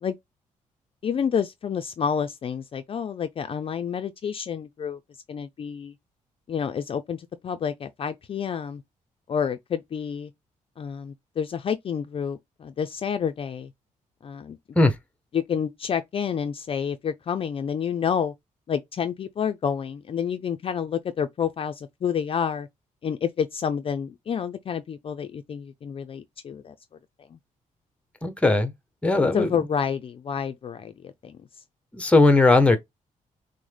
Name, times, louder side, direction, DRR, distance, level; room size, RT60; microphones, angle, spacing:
voice 1, 1.0-5.0 5.3-5.9 6.5-8.8 9.3-10.3 10.8-13.7 14.2-14.6 15.3-18.3 18.7-22.7 23.0-26.7 27.3-27.4 29.3-31.4, left 7 dB, 40° left, 0.4 m, -29 dB
voice 2, 28.2-28.7 29.0-29.5 31.9-32.8, left 2 dB, 10° left, 0.7 m, -18 dB
6.2 x 2.1 x 3.3 m
cardioid pair, 125°, 14 cm